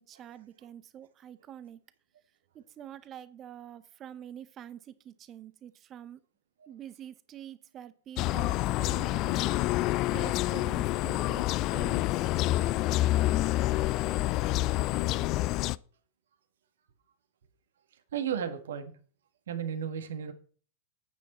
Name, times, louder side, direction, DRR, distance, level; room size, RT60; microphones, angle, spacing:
voice 1, 0.0-1.8 2.5-6.2 6.7-9.5 10.1-12.2, right 10 dB, 30° right, 0.9 m, -46 dB
sound 1, 8.2-15.8, left 17 dB, 40° left, 0.3 m, -28 dB
voice 2, 18.1-18.9 19.5-20.3, right 8 dB, 65° right, 1.6 m, -33 dB
9.2 x 8.7 x 4.2 m
figure-of-eight pair, 90°, 0 cm